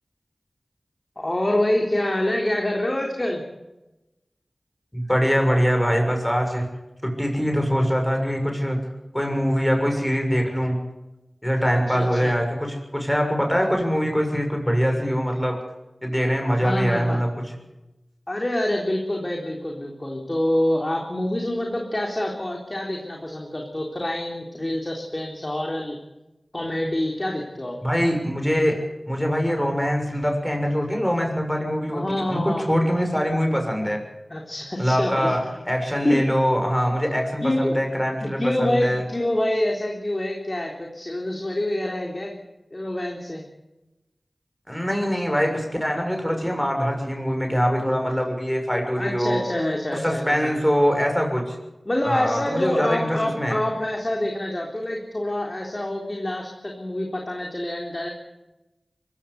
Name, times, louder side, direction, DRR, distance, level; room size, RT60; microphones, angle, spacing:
voice 1, 1.2-3.4 11.9-12.3 16.5-17.2 18.3-26.0 26.5-27.8 31.9-32.7 34.3-35.3 36.0-36.2 37.4-37.8 38.4-42.3 42.7-43.4 49.0-50.6 51.9-58.1, left 1 dB, 35° left, 0 dB, 3.7 m, -26 dB
voice 2, 4.9-6.6 7.0-8.8 9.1-10.8 11.4-15.6 16.0-17.5 27.8-28.8 29.1-34.0 34.8-39.0 44.7-49.4 49.9-51.6 52.0-53.6, equal, 10° left, 3 dB, 6.6 m, -23 dB
24.0 x 16.0 x 8.3 m, 1.0 s
wide cardioid pair, 45°, 0 cm